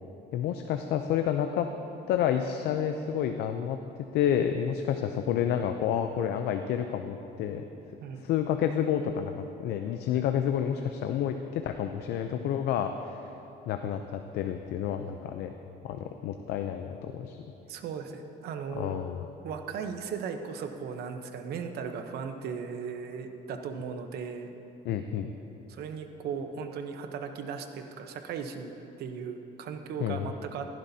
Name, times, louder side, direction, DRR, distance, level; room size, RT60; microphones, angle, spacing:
voice 1, 0.3-1.7 2.1-3.8 4.1-7.6 8.2-13.2 13.7-15.5 15.8-17.4 18.7-19.3 24.8-25.3 30.0-30.3, left 9 dB, 75° left, 6 dB, 0.5 m, -29 dB
voice 2, 17.7-19.0 19.4-24.5 25.7-28.7 29.0-30.7, right 6 dB, 70° right, 6 dB, 0.9 m, -37 dB
15.5 x 11.0 x 2.8 m, 3.0 s
cardioid pair, 110°, 17 cm